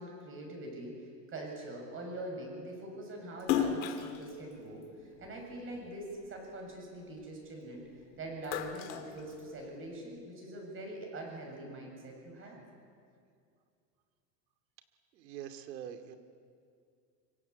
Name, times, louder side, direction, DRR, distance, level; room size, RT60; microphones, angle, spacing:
voice 1, 0.0-12.6, right 1 dB, 25° right, 1 dB, 7.4 m, -43 dB
Splash splatter, 3.4-5.9 6.4-7.9 8.2-9.9, left 9 dB, 85° left, 2.7 m, -35 dB
voice 2, 15.1-16.2, right 9 dB, 85° right, 7 dB, 2.7 m, -44 dB
25.5 x 25.0 x 8.4 m, 2.3 s
supercardioid pair, 160°, 50 cm